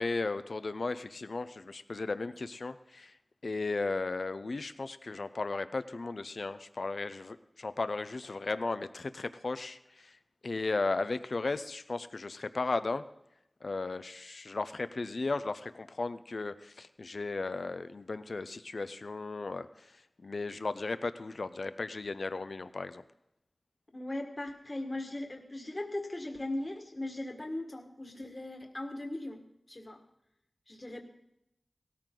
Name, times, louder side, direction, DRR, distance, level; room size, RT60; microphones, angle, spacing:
voice 1, 0.0-3.1 3.4-10.2 10.4-13.0 13.6-23.0, left 3 dB, 75° left, 12 dB, 0.6 m, -35 dB
voice 2, 23.9-30.0 30.7-31.0, left 1 dB, 40° left, 4 dB, 1.7 m, -39 dB
17.5 x 13.5 x 3.8 m, 0.82 s
wide cardioid pair, 55°, 0 cm